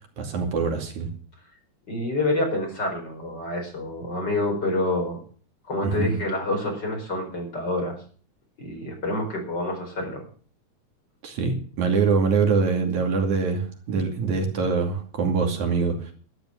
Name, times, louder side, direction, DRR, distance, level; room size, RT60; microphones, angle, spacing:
voice 1, 0.2-1.1 5.8-6.2 11.2-16.0, right 4 dB, 75° right, 3 dB, 4.0 m, -24 dB
voice 2, 1.9-5.2 5.7-8.0 8.6-10.2, left 2 dB, 35° left, 2 dB, 5.2 m, -27 dB
12.0 x 12.0 x 6.6 m, 0.43 s
omnidirectional pair, 3.4 m